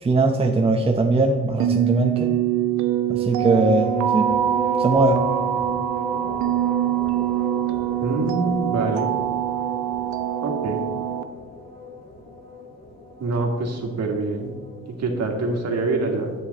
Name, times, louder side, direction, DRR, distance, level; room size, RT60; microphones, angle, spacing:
voice 1, 0.0-2.4 3.1-4.3 4.8-5.2, right 3 dB, 20° right, 3 dB, 0.7 m, -20 dB
sound 1, 1.6-11.2, right 11 dB, 75° right, 0.7 m, -24 dB
sound 2, 3.2-15.1, equal, 25° left, 1.6 m, -36 dB
voice 2, 8.0-9.1 10.4-10.8 13.2-14.5 15.0-16.3, right 3 dB, 60° right, 2 dB, 1.9 m, -25 dB
10.0 x 8.0 x 4.1 m, 1.5 s
cardioid pair, 90°, 30 cm